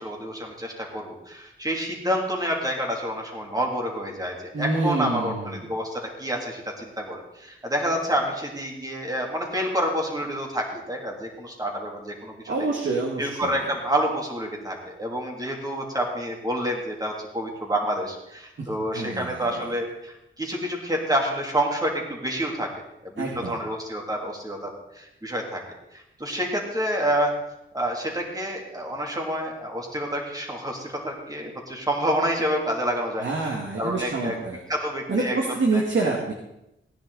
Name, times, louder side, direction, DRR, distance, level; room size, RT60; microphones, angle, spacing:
voice 1, 0.0-12.7 13.2-22.7 23.0-25.6 25.9-27.3 27.7-33.5 33.8-34.4 34.7-36.1, equal, 15° right, 0 dB, 3.1 m, -28 dB
voice 2, 4.5-5.6 12.5-13.6 18.6-18.7 18.9-19.5 23.2-23.6 33.2-34.6 35.1-36.3, right 3 dB, 65° right, -1 dB, 2.2 m, -27 dB
17.5 x 10.0 x 4.1 m, 0.86 s
wide cardioid pair, 95°, 21 cm